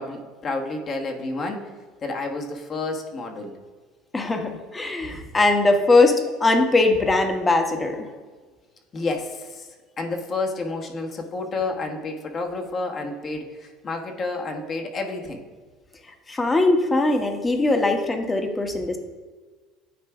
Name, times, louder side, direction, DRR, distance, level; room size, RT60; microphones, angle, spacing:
voice 1, 0.0-1.7 2.0-3.5 5.1-5.3 8.9-15.4, left 3 dB, 40° left, 2 dB, 1.3 m, -30 dB
voice 2, 4.1-8.1 16.3-19.0, left 2 dB, 20° left, 5 dB, 1.2 m, -20 dB
9.6 x 3.3 x 4.8 m, 1.4 s
hypercardioid pair, 70°, 0 cm